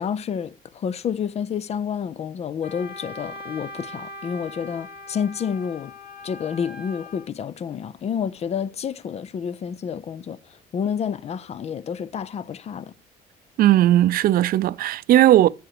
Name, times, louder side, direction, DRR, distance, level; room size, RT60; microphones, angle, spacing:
voice 1, 0.0-5.9 6.2-10.4 10.7-12.9, left 7 dB, 40° left, 0.5 m, -29 dB
Wind instrument woodwind instrument, 2.6-7.3, left 2 dB, 60° left, 1.1 m, -40 dB
voice 2, 13.6-15.5, right 13 dB, 60° right, 0.5 m, -17 dB
7.8 x 6.2 x 4.8 m
cardioid pair, 110°, 17 cm